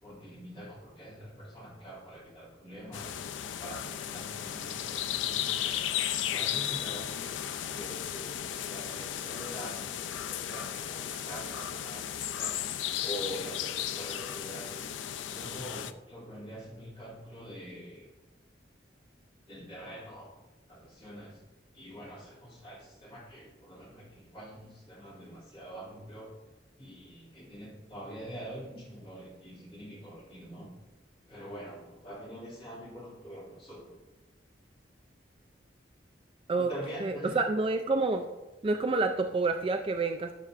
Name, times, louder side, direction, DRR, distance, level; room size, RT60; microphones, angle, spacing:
voice 1, 0.0-3.2 3.6-5.9 6.2-8.3 8.6-12.6 13.0-14.9 15.2-18.1 19.5-20.3 20.7-21.4 21.7-26.3 26.8-30.7 31.3-34.0 36.6-37.4, equal, 30° left, -5 dB, 2.4 m, -45 dB
sound 1, 2.9-15.9, left 10 dB, 90° left, 0.4 m, -35 dB
voice 2, 37.0-38.3 38.6-40.3, right 3 dB, 30° right, 5 dB, 0.3 m, -28 dB
12.5 x 5.6 x 2.5 m, 1.1 s
head